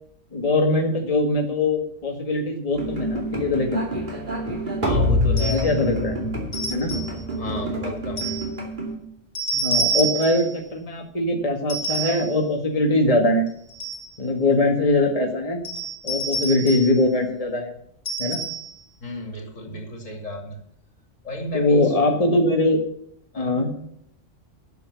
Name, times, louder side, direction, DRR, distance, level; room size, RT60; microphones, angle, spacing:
voice 1, 0.3-3.8 5.5-6.2 6.7-7.0 9.5-13.5 14.2-15.6 16.0-17.7 18.2-18.4 21.5-22.8 23.4-23.7, left 2 dB, 30° left, 2 dB, 1.8 m, -22 dB
Mridangam in electroacoustic music, 2.7-9.0, left 1 dB, 40° right, 2.7 m, -26 dB
voice 2, 4.8-5.7 7.4-8.4 19.0-20.6 21.2-22.2 23.3-23.7, left 1 dB, 75° left, 2 dB, 3.3 m, -33 dB
sound 1, 5.4-5.8 6.5-7.2 8.2-8.5 9.4-10.5 11.7-12.3 13.5-14.1 15.6-17.0 18.1-18.8, right 3 dB, 60° left, 4.0 m, -28 dB
12.0 x 7.1 x 6.8 m, 0.68 s
omnidirectional pair, 1.3 m